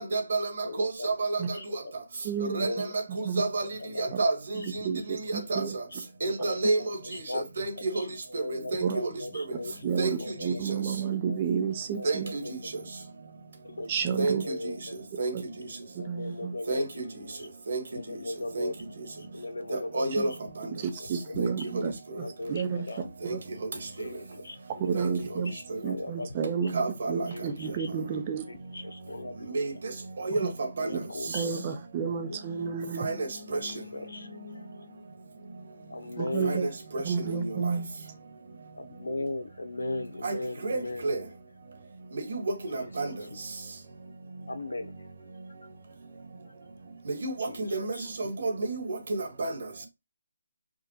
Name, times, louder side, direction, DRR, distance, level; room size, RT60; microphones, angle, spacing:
voice 1, 0.0-0.5 0.8-1.4 2.5-2.7 3.4-3.6 4.2-4.3 5.5-5.6 6.2-6.9 7.3-8.0 8.3-9.1 9.3-9.4 10.0-10.1 12.0-12.2 14.2-14.3 15.2-15.3 16.7-16.9 17.7-17.8 18.5-18.7 19.9-20.3 21.4-21.5 21.7-21.8 23.3-23.4 24.9-25.1 26.7-27.3 29.5-29.7 30.2-30.5 30.8-30.9 33.0-33.3 33.6-33.7 36.5-36.6 36.9-37.0 40.2-40.3 40.6-41.2 42.3-42.4 42.7-43.1 47.2-47.3 47.6-48.8 49.1-49.5, right 3 dB, 55° right, 1.4 m, -29 dB
voice 2, 0.6-1.1 1.5-1.7 2.6-3.3 3.8-4.1 4.6-4.9 5.6-7.4 7.8-8.1 8.4-9.9 10.2-11.4 12.0-12.7 13.6-13.9 14.4-15.0 15.8-17.5 17.9-20.4 21.0-23.1 23.9-24.6 25.1-26.3 26.6-26.7 27.3-28.0 28.5-29.6 30.6-31.8 32.0-32.4 33.6-34.3 35.9-36.7 38.7-41.1 42.7-43.4 44.5-44.9 47.4-48.3, left 2 dB, 85° left, 0.9 m, -39 dB
voice 3, 2.2-2.7 3.2-3.4 4.6-5.7 8.8-9.0 9.8-12.3 13.9-14.4 15.3-15.4 15.9-16.5 20.2-20.3 20.8-21.9 22.5-22.9 23.3-23.4 24.8-25.5 25.8-26.8 27.1-28.5 30.3-30.5 31.3-33.1 36.2-36.7 37.0-37.9, right 6 dB, 30° right, 0.7 m, -31 dB
4.9 x 2.5 x 2.8 m
figure-of-eight pair, 155°, 0 cm